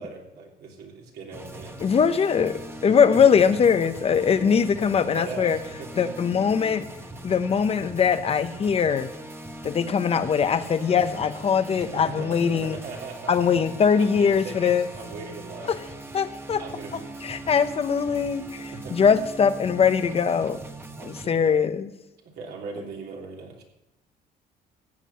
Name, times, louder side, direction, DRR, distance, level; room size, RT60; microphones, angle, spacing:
voice 1, 0.0-1.8 2.8-3.6 4.3-6.1 11.7-13.3 14.0-15.9 16.6-17.1 18.7-19.0 20.9-21.6 22.3-23.6, right 4 dB, 70° right, 0 dB, 3.2 m, -39 dB
sound 1, 1.3-21.3, right 1 dB, 15° right, 1.3 m, -41 dB
voice 2, 1.8-5.6 6.0-6.9 7.2-9.1 9.6-12.8 13.3-14.9 15.7-15.8 16.1-16.6 17.2-20.6 21.0-21.9, left 6 dB, 35° left, 10 dB, 0.9 m, -21 dB
14.5 x 8.4 x 5.6 m, 0.93 s
cardioid pair, 110°, 17 cm